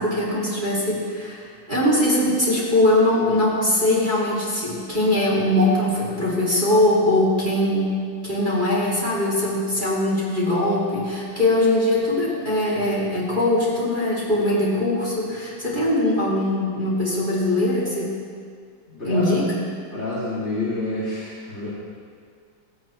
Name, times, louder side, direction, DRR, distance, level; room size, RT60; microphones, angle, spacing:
voice 1, 0.0-7.9 8.2-18.1 19.0-19.5, left 1 dB, 25° right, -7 dB, 2.4 m, -21 dB
voice 2, 18.9-19.4 19.9-21.7, left 2 dB, 35° left, -10 dB, 2.4 m, -28 dB
19.5 x 8.3 x 3.1 m, 2.2 s
omnidirectional pair, 2.0 m